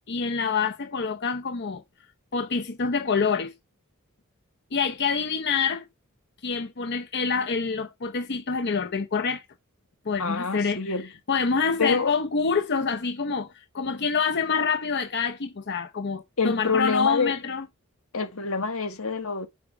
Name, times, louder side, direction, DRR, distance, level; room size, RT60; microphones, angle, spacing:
voice 1, 0.1-1.8 2.3-3.5 4.7-5.9 6.4-9.4 10.1-10.9 11.3-17.7, left 5 dB, 55° left, 0.7 m, -26 dB
voice 2, 10.2-11.1 11.8-12.1 16.4-17.3 18.1-19.5, left 4 dB, 85° left, 1.6 m, -26 dB
7.1 x 5.0 x 5.9 m
head